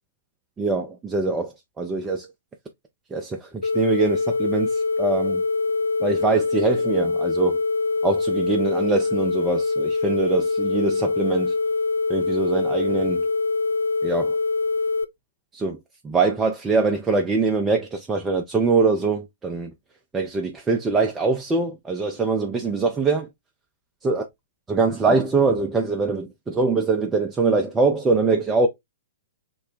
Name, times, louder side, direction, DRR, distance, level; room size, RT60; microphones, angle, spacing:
voice 1, 0.6-2.3 3.1-5.4 6.0-7.6 8.0-11.5 12.1-13.2 14.0-14.4 15.5-15.8 16.0-19.7 20.1-23.3 24.0-24.2 24.7-28.7, right 4 dB, 15° right, 0.5 m, -23 dB
sound 1, 3.6-15.0, left 3 dB, 75° left, 0.3 m, -24 dB
3.0 x 2.1 x 3.8 m
figure-of-eight pair, 110°, 0 cm